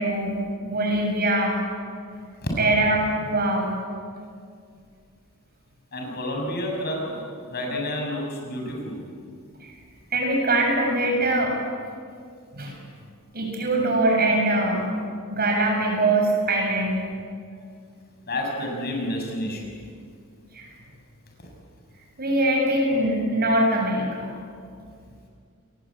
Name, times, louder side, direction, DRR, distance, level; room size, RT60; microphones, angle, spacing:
voice 1, 0.0-1.6 2.6-3.7 9.6-9.7 10.1-11.5 12.5-12.7 13.3-14.9 15.3-17.0 20.5-20.7 22.2-24.3, right 1 dB, 45° right, 0 dB, 7.5 m, -22 dB
voice 2, 5.9-7.2 7.5-9.0 18.3-19.7, left 1 dB, 45° left, 1 dB, 7.1 m, -29 dB
29.5 x 22.0 x 8.8 m, 2.2 s
head